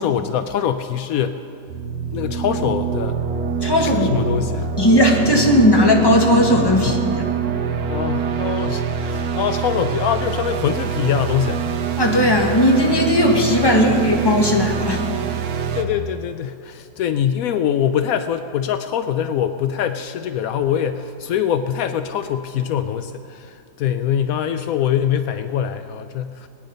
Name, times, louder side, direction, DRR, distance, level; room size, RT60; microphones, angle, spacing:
voice 1, 0.0-1.5 2.1-3.2 3.8-4.7 6.8-7.0 7.9-11.7 13.7-14.0 15.7-26.5, left 9 dB, 85° left, 9 dB, 0.7 m, -23 dB
sound 1, 1.7-15.8, right 6 dB, 75° right, 1.5 m, -25 dB
voice 2, 3.6-4.1 4.8-7.3 12.0-15.0, left 1 dB, 15° left, 0 dB, 1.5 m, -16 dB
21.0 x 9.7 x 5.3 m, 2.5 s
omnidirectional pair, 2.0 m